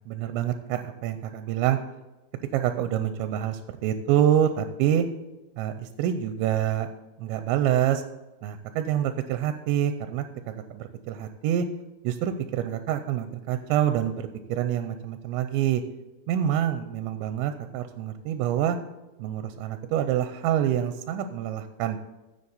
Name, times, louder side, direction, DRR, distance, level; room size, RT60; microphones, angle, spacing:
voice 1, 0.1-1.8 2.5-5.1 5.6-6.9 7.2-8.0 8.4-11.7 12.0-15.8 16.3-18.8 19.2-22.0, right 10 dB, 90° right, 9 dB, 2.9 m, -26 dB
14.0 x 7.1 x 4.1 m, 1.1 s
omnidirectional pair, 5.2 m